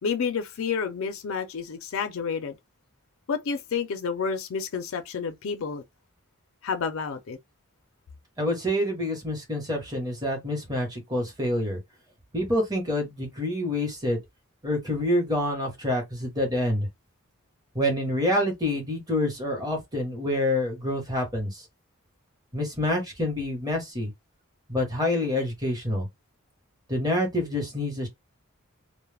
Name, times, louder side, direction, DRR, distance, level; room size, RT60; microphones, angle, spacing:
voice 1, 0.0-2.6 3.3-5.8 6.6-7.4, left 6 dB, 65° left, 0.4 m, -30 dB
voice 2, 8.4-11.8 12.3-14.2 14.6-16.9 17.7-21.6 22.5-24.1 24.7-26.1 26.9-28.1, left 1 dB, 15° right, 1.0 m, -27 dB
2.3 x 2.0 x 3.2 m
head